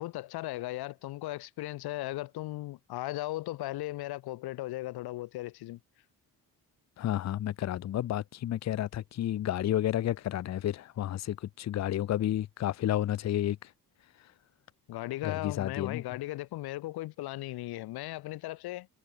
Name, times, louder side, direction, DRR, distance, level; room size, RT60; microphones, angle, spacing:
voice 1, 0.0-5.8 14.9-18.9, left 17 dB, 85° left, 0.6 m, -37 dB
voice 2, 7.0-13.6 15.2-16.0, left 12 dB, 45° left, 0.6 m, -31 dB
cardioid pair, 140°, 37 cm